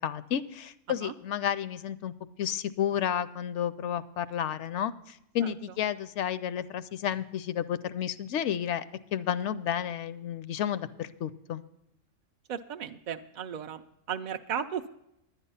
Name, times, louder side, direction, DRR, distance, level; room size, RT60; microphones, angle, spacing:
voice 1, 0.0-2.1 2.4-8.8 9.1-11.6, left 9 dB, 70° left, 15 dB, 0.9 m, -31 dB
voice 2, 12.5-13.8 14.1-14.9, right 8 dB, 70° right, 6 dB, 0.4 m, -35 dB
10.0 x 9.9 x 5.5 m, 0.80 s
omnidirectional pair, 1.3 m